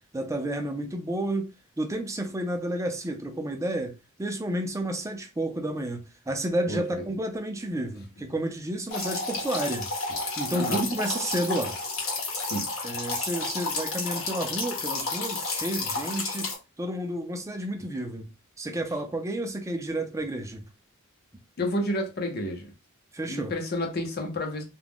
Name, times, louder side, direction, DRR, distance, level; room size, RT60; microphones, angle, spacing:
voice 1, 0.1-1.5 1.8-9.9 10.4-11.8 12.8-18.3 18.6-20.6 23.1-23.5, right 1 dB, 15° right, 0.4 m, -31 dB
sound 1, 8.9-16.5, left 3 dB, 70° left, 1.0 m, -31 dB
voice 2, 10.5-10.8 12.4-12.7 21.6-22.7 23.3-24.6, left 1 dB, 50° left, 0.7 m, -30 dB
2.3 x 2.1 x 3.4 m
head